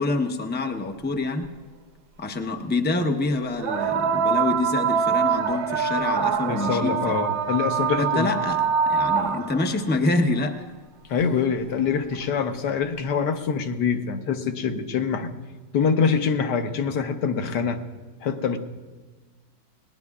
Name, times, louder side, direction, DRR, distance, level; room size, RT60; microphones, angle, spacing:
voice 1, 0.0-1.5 2.2-7.1 8.0-10.7, left 2 dB, 15° left, 5 dB, 0.4 m, -26 dB
sound 1, 1.4-1.5 3.6-9.7 11.2-11.3 12.1-12.2, right 6 dB, 65° right, 1.3 m, -24 dB
voice 2, 6.5-8.3 11.1-15.3 15.7-17.8 18.2-18.6, left 6 dB, 70° left, 7 dB, 1.5 m, -25 dB
28.5 x 20.0 x 2.4 m, 1.3 s
omnidirectional pair, 2.0 m